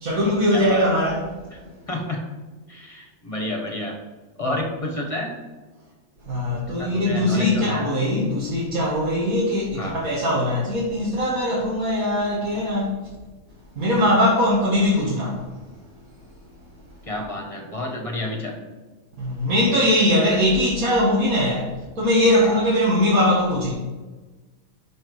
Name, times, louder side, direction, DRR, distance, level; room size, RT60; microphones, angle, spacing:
voice 1, 0.0-1.4 4.4-4.5 6.2-12.9 13.8-15.5 19.2-21.7 22.0-23.7, left 1 dB, 85° right, 2.0 m, -21 dB
voice 2, 0.5-0.8 1.9-2.2 2.7-4.0 4.4-5.4 6.7-7.9 9.7-10.0 17.1-18.6 22.4-22.6, left 1 dB, 25° left, 1.4 m, -30 dB
6.2 x 5.9 x 4.7 m
omnidirectional pair, 1.5 m